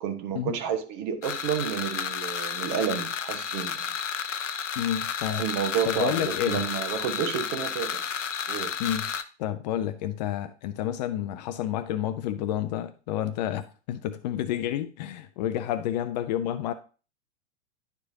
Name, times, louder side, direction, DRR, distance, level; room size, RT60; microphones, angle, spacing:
voice 1, 0.0-3.9 5.3-8.1 8.5-8.7, right 8 dB, 40° right, 1.3 m, -30 dB
sound 1, 1.2-9.2, left 7 dB, 85° left, 0.6 m, -32 dB
voice 2, 4.8-5.4 5.9-6.6 8.8-9.1 9.4-16.7, left 11 dB, 40° left, 0.5 m, -30 dB
10.5 x 4.7 x 2.8 m
figure-of-eight pair, 100°, 36 cm